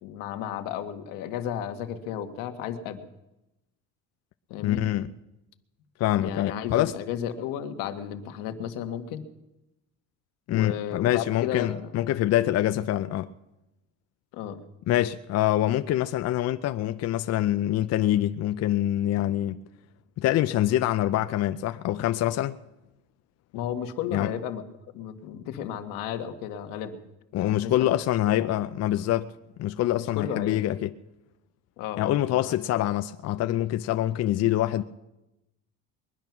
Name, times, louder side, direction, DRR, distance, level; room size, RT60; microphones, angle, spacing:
voice 1, 0.0-3.0 4.5-4.8 6.2-9.3 10.5-11.9 14.3-14.6 23.5-24.6 24.9-27.0 27.4-27.9 28.3-28.5 30.0-30.7 31.8-32.6, left 9 dB, 90° left, 1.4 m, -33 dB
voice 2, 4.6-5.1 6.0-6.9 10.5-13.3 14.9-19.6 20.2-22.6 24.1-24.3 27.3-29.3 29.6-30.9 32.0-34.8, left 13 dB, 55° left, 0.6 m, -25 dB
21.0 x 11.0 x 5.9 m
cardioid pair, 120°, 32 cm